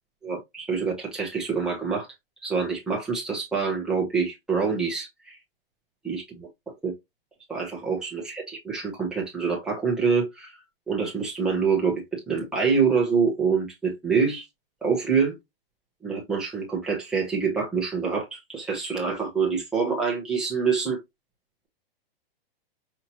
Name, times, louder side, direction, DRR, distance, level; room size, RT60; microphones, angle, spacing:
voice 1, 0.2-2.1 2.4-5.4 6.0-6.5 6.8-6.9 7.5-10.5 10.9-14.5 14.8-15.4 16.0-21.0, right 5 dB, ahead, 0.7 m, -26 dB
5.6 x 2.6 x 2.8 m
hypercardioid pair, 180°, 29 cm